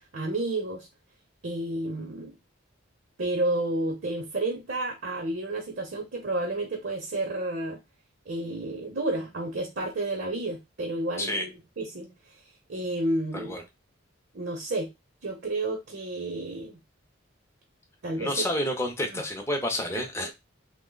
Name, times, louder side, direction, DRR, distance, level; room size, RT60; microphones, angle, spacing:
voice 1, 0.1-0.9 1.4-2.3 3.2-7.8 8.3-12.1 12.7-13.6 14.3-14.9 15.2-16.8 18.0-18.3 19.1-19.2 19.9-20.3, right 2 dB, 55° right, 2 dB, 0.7 m, -31 dB
voice 2, 13.3-13.6 18.2-20.3, left 1 dB, 15° left, 3 dB, 0.5 m, -29 dB
3.0 x 2.1 x 3.8 m, 0.23 s
head